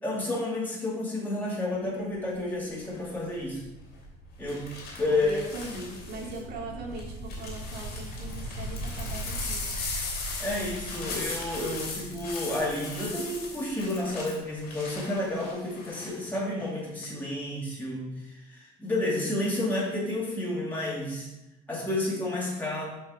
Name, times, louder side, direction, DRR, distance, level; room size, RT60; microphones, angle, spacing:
voice 1, 0.0-3.6 4.4-4.7 5.0-5.4 10.4-21.3 21.7-22.9, left 2 dB, 10° left, -6 dB, 2.6 m, -30 dB
sound 1, 1.6-15.2, right 1 dB, 90° left, 2.0 m, -41 dB
sound 2, 2.8-3.2 4.5-6.4 6.9-16.2 16.6-17.0, left 4 dB, 75° left, 2.8 m, -39 dB
voice 2, 5.1-9.7, right 2 dB, 65° right, -2 dB, 2.3 m, -40 dB
6.3 x 5.5 x 4.9 m, 0.94 s
cardioid pair, 110°, 17 cm